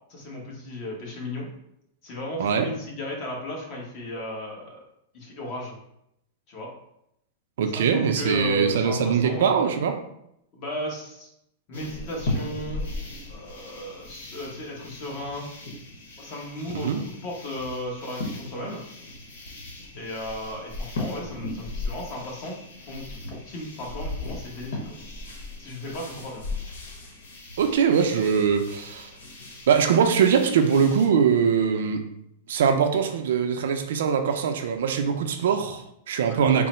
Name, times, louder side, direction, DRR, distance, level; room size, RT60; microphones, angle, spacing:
voice 1, 0.1-1.5 2.0-4.8 5.1-5.8 6.5-6.7 7.7-9.6 10.5-11.3 11.7-12.9 13.3-15.5 16.2-18.8 19.9-22.6 22.9-24.9 25.6-26.4 36.3-36.5, equal, 35° left, -2 dB, 1.0 m, -35 dB
voice 2, 7.6-10.0 16.7-17.0 27.6-29.1 29.7-32.0 32.5-36.7, right 7 dB, 75° right, 6 dB, 0.4 m, -22 dB
sound 1, 11.7-31.1, left 2 dB, 85° left, 1.0 m, -37 dB
3.7 x 2.0 x 4.2 m, 0.78 s
supercardioid pair, 160°, 0 cm